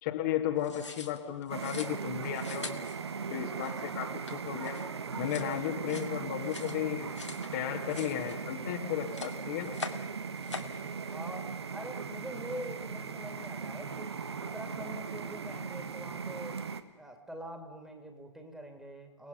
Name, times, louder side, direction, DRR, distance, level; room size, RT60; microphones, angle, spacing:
voice 1, 0.0-2.8 3.3-4.8 5.2-7.1 7.5-9.7, left 11 dB, 35° left, 2 dB, 1.9 m, -34 dB
sound 1, 0.6-7.5 7.8-8.7 9.0-10.1 10.4-10.8, left 4 dB, 75° left, 2.4 m, -44 dB
sound 2, 1.5-16.8, right 5 dB, 65° right, 1.5 m, -38 dB
voice 2, 11.0-16.6 17.0-19.3, equal, 5° right, 4 dB, 2.7 m, -44 dB
30.0 x 19.0 x 5.8 m, 1.1 s
figure-of-eight pair, 115°, 15 cm